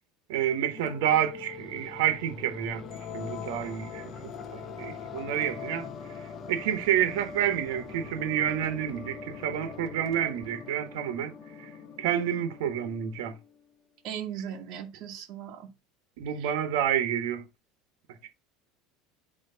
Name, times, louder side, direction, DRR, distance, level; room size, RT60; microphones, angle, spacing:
voice 1, 0.3-5.9 6.5-11.3 11.6-11.7 12.0-13.3 16.2-17.4, right 10 dB, 80° right, 1.2 m, -29 dB
sound 1, 0.7-13.6, left 6 dB, 25° left, 0.7 m, -42 dB
voice 2, 14.0-15.7 16.4-16.5, right 9 dB, 40° right, 1.4 m, -38 dB
8.2 x 3.1 x 5.5 m
cardioid pair, 175°, 0 cm